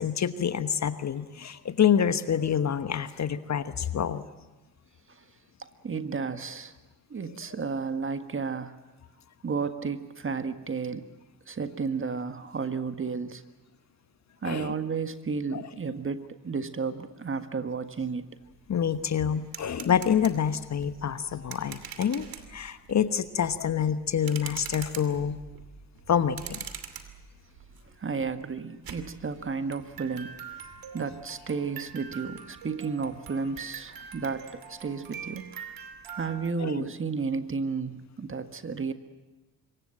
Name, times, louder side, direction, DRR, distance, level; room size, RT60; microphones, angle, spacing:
voice 1, 0.0-4.2 14.4-14.7 15.5-15.6 18.7-25.4 26.1-26.6 36.6-36.8, left 8 dB, 35° left, 13 dB, 1.2 m, -27 dB
voice 2, 5.6-6.7 7.1-8.8 9.4-11.1 11.5-13.4 14.4-18.4 28.0-30.6 30.9-35.6 36.1-38.9, right 5 dB, 25° right, 10 dB, 1.6 m, -32 dB
sound 1, 18.1-18.2 18.5-36.5, right 7 dB, 50° right, 2.6 m, -44 dB
25.5 x 23.0 x 7.6 m, 1.1 s
figure-of-eight pair, 45°, 46 cm